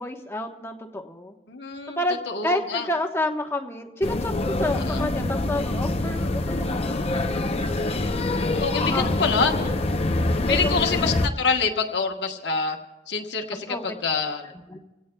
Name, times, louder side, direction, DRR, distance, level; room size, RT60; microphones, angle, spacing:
voice 1, 0.0-1.3 2.0-7.0 8.8-9.1 10.4-11.1 13.7-13.8 14.7-14.8, left 1 dB, 15° left, 3 dB, 1.1 m, -29 dB
voice 2, 1.5-2.9 4.7-5.0 8.1-9.7 10.5-12.8 13.1-14.5, left 4 dB, 60° left, 3 dB, 1.2 m, -26 dB
sound 1, 4.0-11.3, left 2 dB, 30° left, 0.7 m, -25 dB
26.0 x 17.0 x 2.3 m, 1.1 s
head